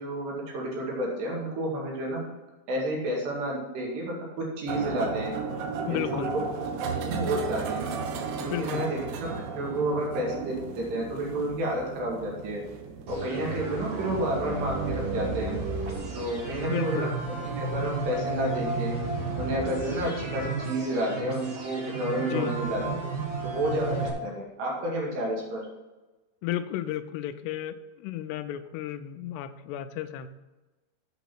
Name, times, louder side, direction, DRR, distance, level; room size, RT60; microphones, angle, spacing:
voice 1, 0.0-2.2 2.7-5.3 5.9-6.4 6.9-7.8 8.4-12.6 13.1-15.6 16.1-19.0 19.4-23.0 23.4-25.6, right 1 dB, 70° right, -2 dB, 4.1 m, -30 dB
sound 1, 4.7-17.9, right 5 dB, 85° right, 3.2 m, -36 dB
voice 2, 5.9-6.3 8.5-8.9 16.7-17.1 22.2-22.6 26.4-30.3, left 11 dB, 80° left, 10 dB, 2.5 m, -33 dB
sound 2, 13.1-24.1, right 3 dB, 50° right, 2.4 m, -32 dB
8.2 x 6.7 x 5.9 m, 1.1 s
omnidirectional pair, 5.1 m